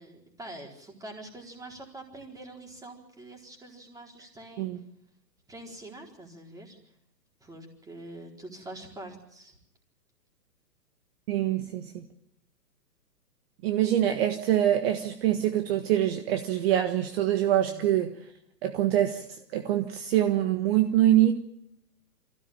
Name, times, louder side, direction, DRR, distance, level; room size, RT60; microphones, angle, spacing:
voice 1, 0.0-4.7 5.5-6.8 7.4-9.6 17.7-17.9, right 1 dB, 5° right, 1 dB, 4.3 m, -45 dB
voice 2, 11.3-12.1 13.6-18.1 18.6-21.3, right 12 dB, 40° right, 6 dB, 1.6 m, -25 dB
24.5 x 16.0 x 8.8 m, 0.77 s
hypercardioid pair, 140°, 48 cm